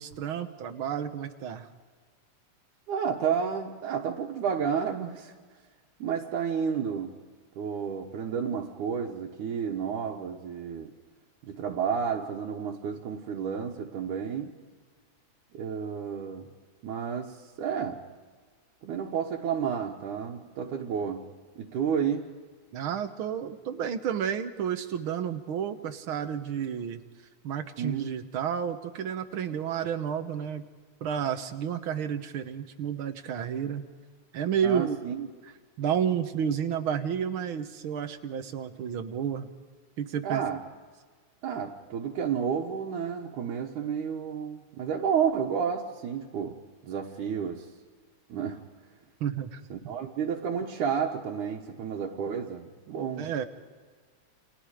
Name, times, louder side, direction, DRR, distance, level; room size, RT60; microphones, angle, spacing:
voice 1, 0.0-1.7 22.7-27.0 27.4-30.7 31.0-33.8 34.3-35.0 35.8-39.5 40.0-40.4 49.2-49.9 53.2-53.5, right 8 dB, 55° right, 8 dB, 1.6 m, -31 dB
voice 2, 2.9-5.3 6.0-7.2 7.6-10.9 11.4-14.5 15.5-16.5 16.8-18.1 18.8-21.3 21.6-22.3 27.8-28.1 34.6-35.3 40.2-40.6 41.4-47.7 48.3-48.7 49.7-53.3, right 7 dB, 90° right, -2 dB, 2.8 m, -31 dB
29.5 x 27.0 x 5.0 m, 1.5 s
omnidirectional pair, 3.4 m